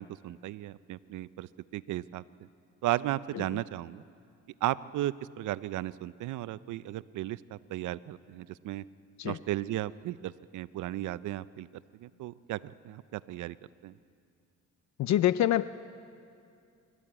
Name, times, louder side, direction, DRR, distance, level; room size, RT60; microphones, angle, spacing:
voice 1, 0.0-2.5 2.8-4.0 4.6-8.8 9.2-11.7 12.0-13.6 13.8-13.9, right 14 dB, 80° right, 17 dB, 0.6 m, -35 dB
voice 2, 15.0-15.7, left 12 dB, 65° left, 15 dB, 0.5 m, -25 dB
28.0 x 12.5 x 8.8 m, 2.4 s
cardioid pair, 90°, 30 cm